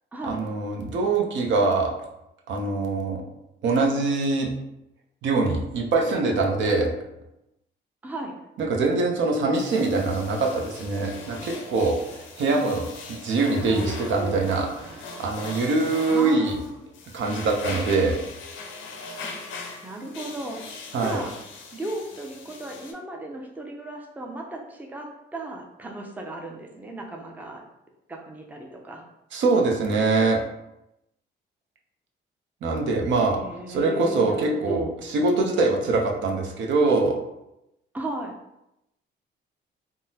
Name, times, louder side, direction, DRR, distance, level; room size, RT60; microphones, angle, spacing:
voice 1, 0.2-1.9 2.5-3.2 3.6-4.5 5.2-6.9 8.6-16.6 17.1-18.2 20.9-21.2 29.3-30.4 32.6-33.4 33.7-34.8 35.1-37.2, right 3 dB, 70° right, 1 dB, 0.6 m, -23 dB
voice 2, 8.0-8.3 12.5-12.6 13.7-14.4 16.1-16.8 19.2-19.3 19.8-20.8 21.0-21.3 21.7-27.6 28.1-29.1 33.3-35.0 37.9-38.3, right 1 dB, 10° right, 1 dB, 0.5 m, -35 dB
sound 1, 9.5-22.9, left 3 dB, 80° left, 0.5 m, -40 dB
3.6 x 2.0 x 2.7 m, 0.87 s
cardioid pair, 90°, 20 cm